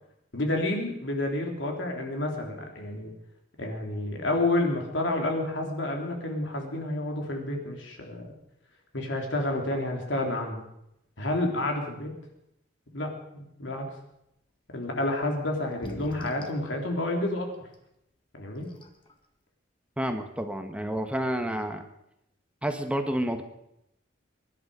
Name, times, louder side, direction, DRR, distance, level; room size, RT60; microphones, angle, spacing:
voice 1, 0.3-3.1 3.6-8.3 8.9-10.7 11.2-12.1 12.9-13.9 14.7-17.6 18.3-18.7, left 1 dB, 75° left, 1 dB, 3.5 m, -29 dB
sound 1, 15.2-15.3 15.7-16.7 17.7-17.8 18.4-18.5 18.7-19.1, equal, 30° left, 1.7 m, -42 dB
voice 2, 20.0-21.8 22.6-23.4, equal, 5° right, 6 dB, 1.1 m, -29 dB
23.5 x 11.0 x 5.0 m, 0.81 s
head